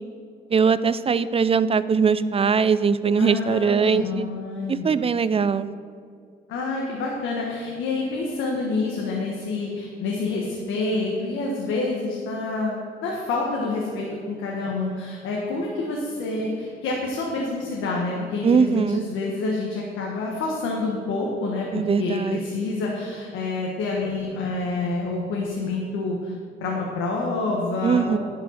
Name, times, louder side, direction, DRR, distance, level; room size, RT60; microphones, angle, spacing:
voice 1, 0.5-4.3 4.7-5.7 18.4-19.0 21.7-22.4 27.8-28.2, right 6 dB, 30° right, 15 dB, 0.4 m, -21 dB
voice 2, 3.2-4.9 6.5-26.3 26.6-28.2, left 3 dB, 90° left, -2 dB, 1.5 m, -28 dB
11.0 x 5.6 x 6.7 m, 2.2 s
cardioid pair, 90°, 20 cm